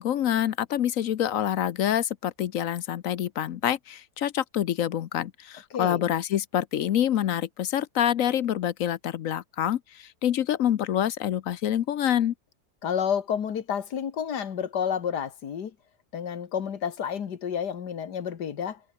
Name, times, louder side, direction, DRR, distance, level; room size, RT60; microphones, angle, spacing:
voice 1, 0.0-12.3, left 10 dB, 60° left, 1.0 m, -26 dB
voice 2, 5.7-6.0 12.8-15.7 16.1-18.8, left 8 dB, 85° left, 2.1 m, -30 dB
omnidirectional pair, 1.7 m